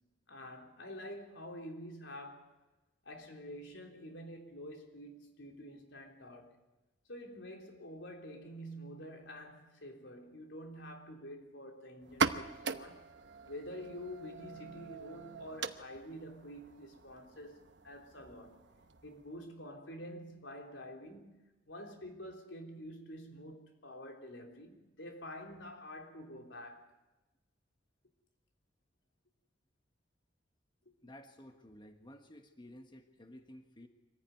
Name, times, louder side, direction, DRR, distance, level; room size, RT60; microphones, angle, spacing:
voice 1, 0.3-2.5 3.1-6.6 7.1-13.1 13.4-18.6 19.0-21.4 21.7-26.9, equal, 85° left, 3.6 m, -48 dB
sound 1, 12.0-19.5, right 4 dB, 70° right, 1.0 m, -41 dB
voice 2, 31.0-33.9, left 1 dB, 25° left, 1.3 m, -54 dB
25.0 x 15.0 x 9.4 m
head